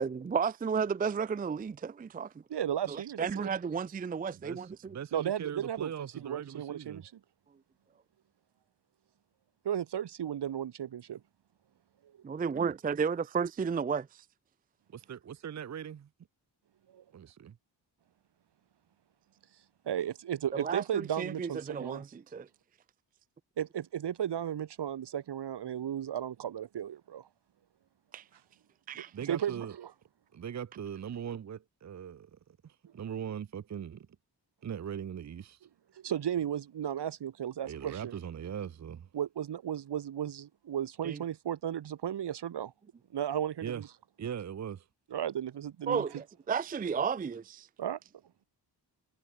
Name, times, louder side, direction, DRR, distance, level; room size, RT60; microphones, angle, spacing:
voice 1, 0.0-2.3 2.9-5.0 12.2-14.2 20.5-22.5 28.1-28.2 28.9-29.1 41.0-41.2 45.9-47.7, right 6 dB, 20° right, 0.4 m, -33 dB
voice 2, 2.5-3.5 5.1-5.9 6.2-7.1 9.6-11.2 16.9-17.0 19.9-22.0 23.6-27.3 29.0-29.9 36.0-38.2 39.1-42.7 43.1-43.9 45.1-46.0 47.8-48.0, right 10 dB, 75° right, 2.4 m, -35 dB
voice 3, 4.3-7.0 14.9-16.1 17.1-17.6 29.1-29.8 30.3-34.1 34.6-35.6 37.6-39.1 43.6-43.8 44.2-44.8, right 8 dB, 40° right, 0.8 m, -40 dB
wide cardioid pair, 165°, 41 cm